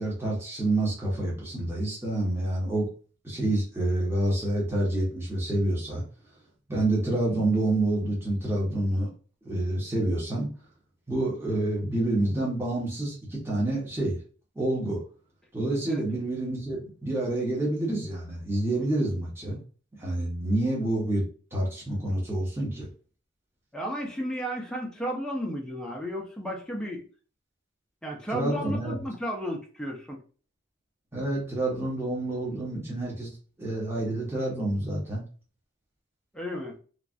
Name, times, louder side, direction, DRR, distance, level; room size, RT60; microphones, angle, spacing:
voice 1, 0.0-2.9 3.2-6.0 6.7-9.1 9.4-10.5 11.1-14.2 14.6-15.0 15.5-19.6 20.0-21.2 21.5-22.9 28.3-29.0 31.1-33.3 33.6-35.2, right 1 dB, 15° right, -5 dB, 1.0 m, -28 dB
voice 2, 23.7-27.0 28.0-30.2 36.3-36.8, equal, 5° left, 0 dB, 0.5 m, -33 dB
3.1 x 2.3 x 2.5 m, 0.38 s
head